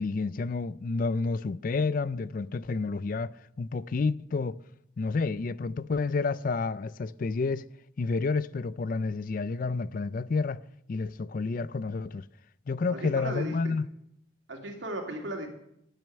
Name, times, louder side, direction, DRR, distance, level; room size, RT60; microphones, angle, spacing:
voice 1, 0.0-4.6 5.0-7.6 8.0-10.6 10.9-12.3 12.7-13.9, left 4 dB, 45° left, 0.4 m, -30 dB
voice 2, 12.9-13.7 14.5-15.5, right 1 dB, 75° right, 2.6 m, -36 dB
9.3 x 8.8 x 9.1 m
head